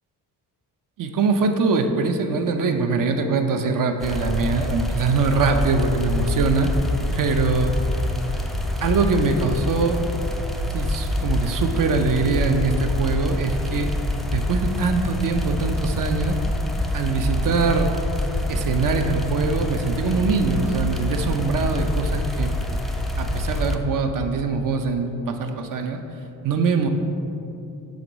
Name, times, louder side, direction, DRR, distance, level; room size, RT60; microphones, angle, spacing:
voice 1, 1.0-6.7 7.1-7.8 8.8-10.0 10.7-13.9 14.3-16.4 16.9-17.9 18.5-22.5 23.2-26.0 26.4-26.9, right 4 dB, 55° right, 6 dB, 0.6 m, -23 dB
sound 1, 4.0-23.8, left 1 dB, ahead, 0.3 m, -26 dB
6.3 x 3.0 x 5.1 m, 2.7 s
cardioid pair, 80°, 40 cm